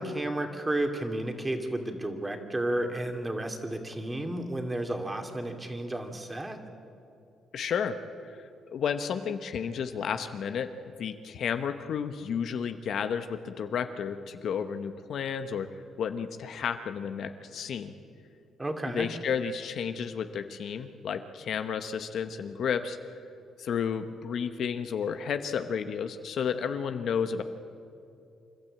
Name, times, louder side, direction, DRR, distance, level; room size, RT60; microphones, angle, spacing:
voice 1, 0.0-6.6 18.6-19.1, right 1 dB, 20° right, 5 dB, 2.4 m, -32 dB
voice 2, 7.5-8.0 8.4-10.7 11.0-15.7 16.0-17.9 18.9-23.0 23.6-27.4, left 7 dB, 65° left, 9 dB, 1.0 m, -32 dB
27.0 x 12.5 x 8.6 m, 2.6 s
cardioid pair, 90°, 0 cm